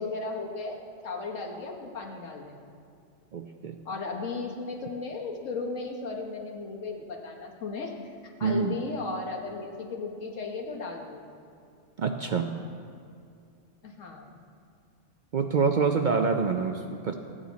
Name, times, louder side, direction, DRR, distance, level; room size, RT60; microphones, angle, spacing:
voice 1, 0.0-2.6 3.8-8.1 8.4-11.2 13.8-14.4, left 3 dB, 90° left, 1 dB, 1.6 m, -35 dB
voice 2, 3.3-3.8 8.4-8.8 12.0-12.6 15.3-17.1, right 5 dB, 60° right, 5 dB, 0.5 m, -26 dB
15.0 x 8.9 x 4.1 m, 2.4 s
omnidirectional pair, 1.3 m